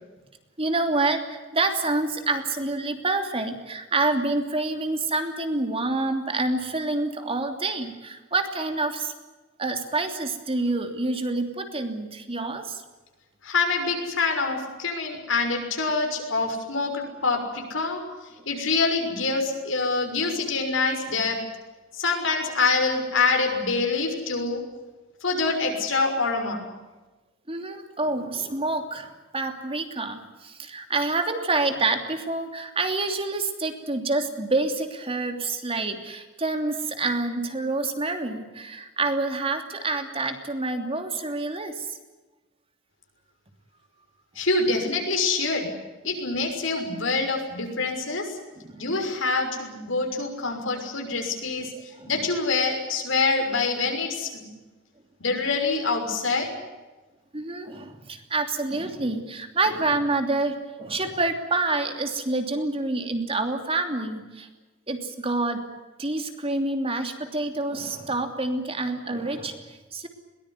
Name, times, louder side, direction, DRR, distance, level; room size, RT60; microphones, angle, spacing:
voice 1, 0.6-9.1 9.6-12.8 27.5-42.0 46.0-46.1 48.6-48.9 51.7-52.3 57.3-64.5 64.9-65.6 66.0-70.1, right 2 dB, 30° right, 6 dB, 3.0 m, -27 dB
voice 2, 13.4-18.0 18.5-21.4 21.9-24.6 25.2-26.6 44.4-45.7 46.0-48.4 48.8-51.7 52.1-54.5 55.2-56.5, left 3 dB, 75° left, 3 dB, 6.3 m, -25 dB
22.0 x 19.5 x 9.8 m, 1.2 s
head